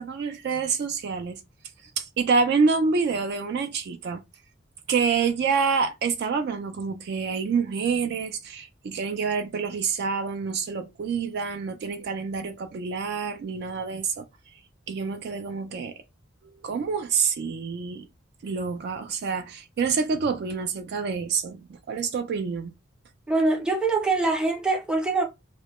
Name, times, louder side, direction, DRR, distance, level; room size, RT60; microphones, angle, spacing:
voice 1, 0.0-1.4 2.0-4.2 4.9-14.2 14.9-15.9 16.6-18.1 18.4-22.7, right 5 dB, 55° right, 0.3 m, -27 dB
voice 2, 23.3-25.2, right 3 dB, 5° right, 0.6 m, -23 dB
2.1 x 2.1 x 2.9 m
head